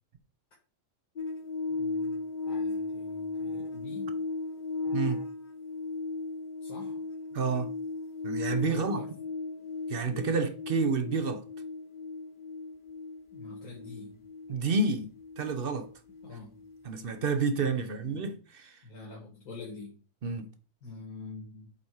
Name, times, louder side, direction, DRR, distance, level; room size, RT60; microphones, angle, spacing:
sound 1, 1.2-17.7 18.0-18.1, left 3 dB, 35° left, 1.1 m, -36 dB
voice 1, 1.7-4.2 6.6-7.0 8.7-9.1 13.3-14.3 16.2-16.6 17.7-18.3 18.8-20.0 20.8-21.7, left 3 dB, 80° left, 2.3 m, -46 dB
voice 2, 7.3-7.7 8.2-9.0 9.9-11.4 14.5-15.9 16.8-18.8 20.2-20.5, right 4 dB, 50° right, 0.8 m, -29 dB
7.2 x 4.2 x 4.7 m
omnidirectional pair, 1.5 m